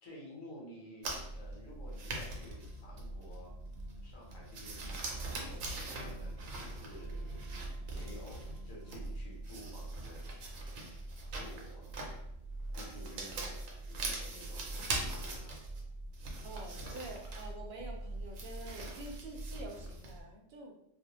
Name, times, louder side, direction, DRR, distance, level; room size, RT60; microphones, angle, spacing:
voice 1, 0.0-3.5 4.0-7.4 7.9-10.7 11.3-11.9 12.7-13.6 13.9-14.7 15.1-15.6, equal, 85° left, -3 dB, 1.2 m, -52 dB
sound 1, 1.0-20.2, right 2 dB, 85° right, 1.0 m, -42 dB
sound 2, 2.2-9.1, left 2 dB, 65° left, 0.8 m, -55 dB
voice 2, 16.4-20.8, right 2 dB, 60° right, 0 dB, 0.7 m, -47 dB
2.5 x 2.1 x 2.8 m, 0.78 s
omnidirectional pair, 1.3 m